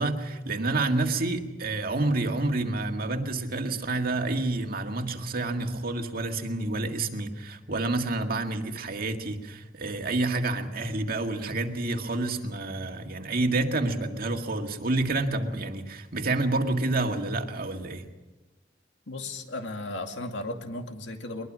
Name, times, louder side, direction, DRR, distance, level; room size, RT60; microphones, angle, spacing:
voice 1, 0.0-18.1, right 2 dB, 55° right, 5 dB, 1.9 m, -28 dB
voice 2, 19.1-21.5, left 2 dB, 70° left, 4 dB, 2.4 m, -35 dB
22.0 x 21.5 x 6.2 m, 1.1 s
head